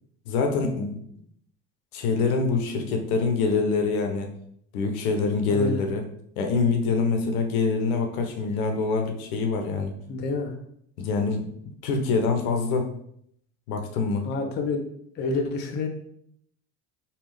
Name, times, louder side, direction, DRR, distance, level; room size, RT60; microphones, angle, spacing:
voice 1, 0.3-0.9 1.9-4.3 4.7-6.0 6.4-10.0 11.0-11.5 11.8-12.9 13.7-14.3, left 4 dB, 70° left, 4 dB, 0.8 m, -25 dB
voice 2, 5.5-5.8 10.1-10.5 14.2-14.8 15.2-15.9, left 3 dB, 25° left, 3 dB, 0.4 m, -28 dB
3.4 x 2.4 x 3.2 m, 0.69 s
hypercardioid pair, 75°, 45 cm